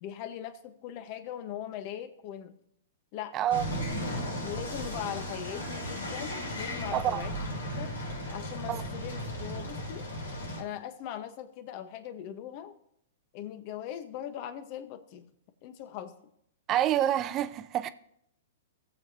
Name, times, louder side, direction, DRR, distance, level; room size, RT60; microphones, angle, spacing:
voice 1, 0.0-2.5 3.1-3.4 4.4-7.9 8.3-10.0 10.6-12.7 13.3-15.3 15.6-16.2, left 10 dB, 45° left, 1.2 m, -40 dB
voice 2, 3.3-3.7 6.9-7.3 8.7-8.8 16.7-17.9, right 11 dB, 30° right, 0.7 m, -27 dB
sound 1, 3.5-10.6, equal, 85° left, 3.5 m, -36 dB
17.5 x 7.6 x 2.9 m
hypercardioid pair, 125°, 0 cm